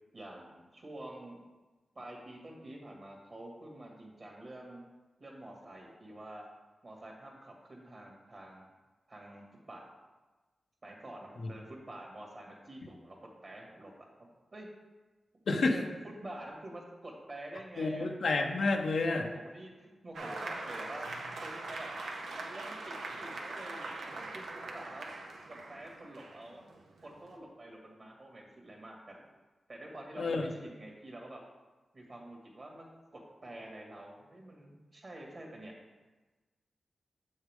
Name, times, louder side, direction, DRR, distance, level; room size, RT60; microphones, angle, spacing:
voice 1, 0.1-1.4 1.9-4.8 5.2-6.5 6.8-8.7 9.1-9.9 10.8-13.9 14.5-14.7 15.5-18.1 19.3-21.1 21.4-25.1 25.5-26.6 27.0-29.2 29.7-31.4 31.9-32.9 33.1-35.8, right 1 dB, 50° right, -1 dB, 2.3 m, -48 dB
voice 2, 15.5-15.8 17.8-19.3 30.2-30.5, left 3 dB, 80° left, 3 dB, 0.8 m, -29 dB
Applause, 20.1-27.3, right 2 dB, 90° right, 0.8 m, -42 dB
7.3 x 6.4 x 3.7 m, 1.2 s
cardioid pair, 50°, 0 cm